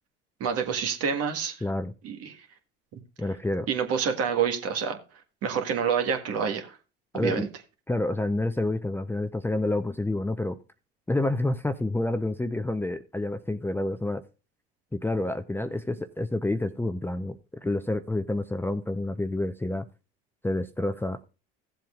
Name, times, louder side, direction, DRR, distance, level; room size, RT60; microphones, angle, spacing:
voice 1, 0.4-1.6 2.0-2.4 3.7-5.0 5.4-6.8 7.1-7.5, right 7 dB, 55° right, 1.7 m, -27 dB
voice 2, 1.6-1.9 3.2-3.7 7.1-7.5 7.9-10.6 11.1-14.2 14.9-19.8 20.4-21.2, left 2 dB, 5° left, 0.7 m, -28 dB
16.0 x 7.6 x 2.5 m
hypercardioid pair, 70°, 29 cm